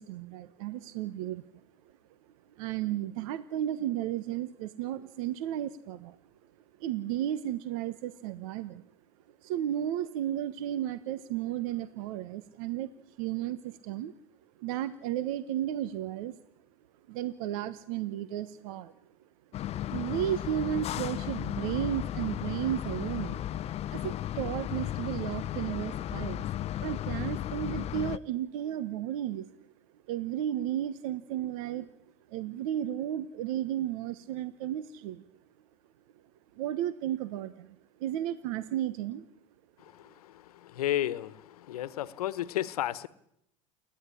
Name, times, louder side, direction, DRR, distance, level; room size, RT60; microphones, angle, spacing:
voice 1, 0.0-1.4 2.6-6.2 6.8-8.8 9.4-14.1 14.6-16.4 17.1-18.9 19.9-23.5 23.9-26.4 26.8-29.5 30.1-31.9 32.3-35.2 36.5-39.2, right 11 dB, 70° right, 13 dB, 1.2 m, -33 dB
sound 1, 19.5-28.2, left 12 dB, 35° left, 0.8 m, -34 dB
voice 2, 40.7-41.4 41.7-43.1, left 13 dB, 90° left, 17 dB, 1.2 m, -31 dB
28.5 x 11.0 x 10.0 m, 0.77 s
supercardioid pair, 120°, 19 cm